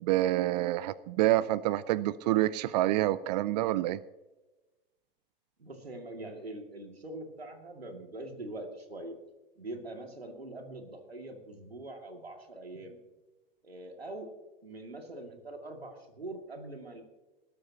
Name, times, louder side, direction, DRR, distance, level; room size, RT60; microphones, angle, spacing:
voice 1, 0.0-4.0, right 15 dB, 45° right, 18 dB, 0.5 m, -27 dB
voice 2, 5.6-9.2 9.6-13.0 13.6-14.3 14.6-17.0, right 2 dB, 90° right, 4 dB, 2.4 m, -43 dB
20.0 x 13.0 x 2.9 m, 1.1 s
figure-of-eight pair, 100°, 30 cm